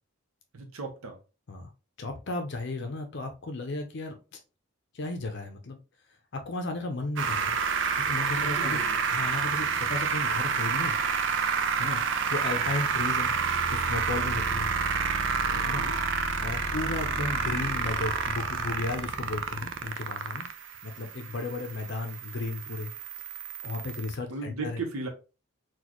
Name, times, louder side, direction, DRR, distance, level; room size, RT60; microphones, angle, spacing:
voice 1, 0.5-1.2 8.4-9.0 15.4-16.0 24.3-25.1, right 3 dB, 80° right, 0.7 m, -37 dB
voice 2, 2.0-4.4 4.9-5.8 6.3-7.6 8.0-8.8 9.1-10.9 11.7-13.3 13.7-14.7 15.6-15.8 16.1-20.5 20.8-22.9 23.6-24.8, left 3 dB, 55° left, 0.5 m, -34 dB
sound 1, 7.2-24.1, right 5 dB, 55° right, 0.4 m, -29 dB
4.0 x 2.2 x 2.9 m
head